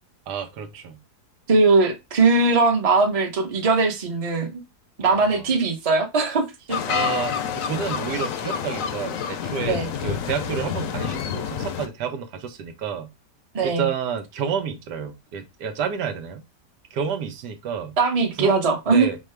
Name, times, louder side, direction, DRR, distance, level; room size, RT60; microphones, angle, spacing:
voice 1, 0.3-1.0 5.0-5.5 6.9-13.1 13.6-16.4 16.9-18.0 18.4-18.5 18.9-19.2, right 6 dB, 85° right, 1.4 m, -30 dB
voice 2, 1.5-4.6 5.0-7.1 9.7-9.9 13.5-13.9 18.0-19.1, right 3 dB, 30° right, 0.8 m, -20 dB
sound 1, 6.7-11.9, left 7 dB, 65° left, 0.9 m, -28 dB
5.6 x 2.3 x 3.2 m
omnidirectional pair, 1.8 m